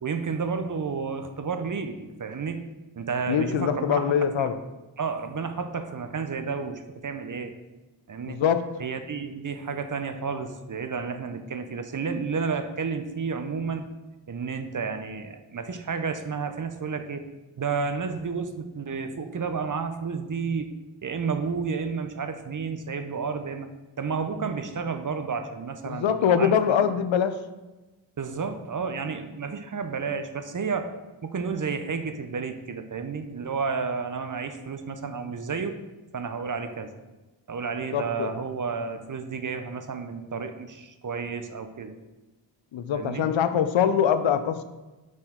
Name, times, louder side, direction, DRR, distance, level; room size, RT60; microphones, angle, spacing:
voice 1, 0.0-2.6 3.0-4.5 5.0-7.5 8.1-8.4 8.8-13.8 14.3-17.3 17.6-20.7 21.0-23.7 24.0-26.5 28.2-30.9 31.2-35.8 36.1-36.9 37.5-42.0 42.9-43.3, right 5 dB, 45° right, 8 dB, 0.6 m, -31 dB
voice 2, 3.3-4.6 8.3-8.7 25.9-27.4 37.9-38.3 42.7-44.6, left 8 dB, 75° left, 11 dB, 0.5 m, -23 dB
6.0 x 4.4 x 3.7 m, 1.1 s
cardioid pair, 60°, 47 cm